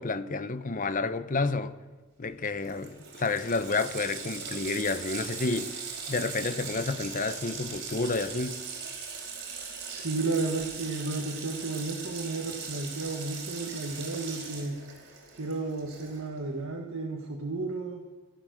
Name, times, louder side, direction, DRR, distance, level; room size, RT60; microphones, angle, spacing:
voice 1, 0.0-1.7 2.2-5.7 6.1-8.6, left 3 dB, 40° left, 0.8 m, -30 dB
Water tap faucet, 2.3-2.4 2.6-16.4, right 5 dB, 60° right, 4.6 m, -40 dB
voice 2, 9.9-14.8 15.4-18.0, right 3 dB, 90° right, 1.8 m, -33 dB
15.5 x 13.0 x 6.5 m
head